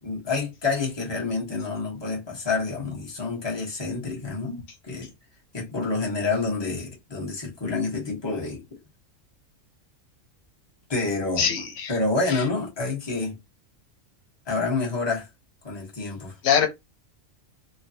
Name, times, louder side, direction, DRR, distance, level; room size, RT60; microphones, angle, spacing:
voice 1, 0.0-5.1 5.5-8.8 10.9-11.5 11.9-13.3 14.5-15.3 15.6-16.3, left 3 dB, 20° left, 1.1 m, -28 dB
voice 2, 11.4-11.9 12.3-12.4 16.4-16.7, left 8 dB, 85° left, 1.1 m, -23 dB
3.1 x 2.2 x 2.7 m
omnidirectional pair, 1.3 m